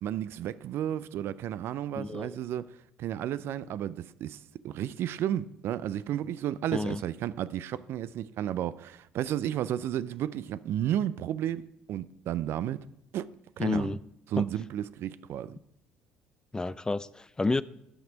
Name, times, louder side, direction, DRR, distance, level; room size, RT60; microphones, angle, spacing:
voice 1, 0.0-2.7 3.0-4.4 4.6-11.6 11.9-12.8 13.1-13.3 13.6-13.9 14.3-15.6, right 11 dB, 60° right, 0.4 m, -32 dB
voice 2, 2.0-2.4 6.7-7.0 13.6-14.0 14.4-14.5 16.5-17.6, left 3 dB, 15° left, 0.3 m, -30 dB
10.0 x 6.0 x 5.1 m
hypercardioid pair, 55°, 5 cm